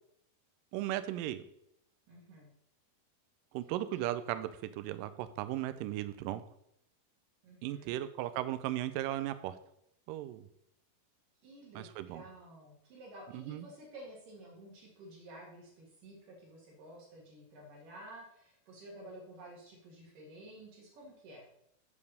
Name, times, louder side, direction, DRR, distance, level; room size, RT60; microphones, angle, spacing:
voice 1, 0.7-1.4 3.5-6.4 7.6-9.6 10.1-10.5 11.8-12.2 13.3-13.7, right 13 dB, 90° right, 12 dB, 1.9 m, -36 dB
voice 2, 2.1-2.5 7.4-8.0 11.4-21.5, right 1 dB, 60° right, -2 dB, 3.0 m, -52 dB
7.4 x 4.8 x 6.6 m, 0.75 s
omnidirectional pair, 4.5 m